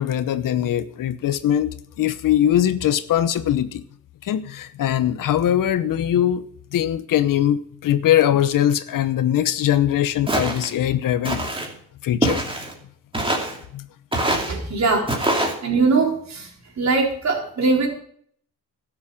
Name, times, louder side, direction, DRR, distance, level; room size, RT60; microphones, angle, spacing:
voice 1, 0.0-3.8 4.2-6.5 6.7-11.4 12.0-12.6 13.7-13.9, left 11 dB, 70° left, 14 dB, 0.9 m, -21 dB
Walk footsteps, 10.3-10.7 11.2-11.7 12.2-12.7 13.1-13.6 14.1-14.5 15.1-15.5, right 1 dB, 15° right, 2.7 m, -23 dB
voice 2, 14.5-15.1 15.6-16.5 16.8-17.9, right 4 dB, 55° right, 0 dB, 4.2 m, -21 dB
12.5 x 7.2 x 7.2 m, 0.63 s
cardioid pair, 90°, 34 cm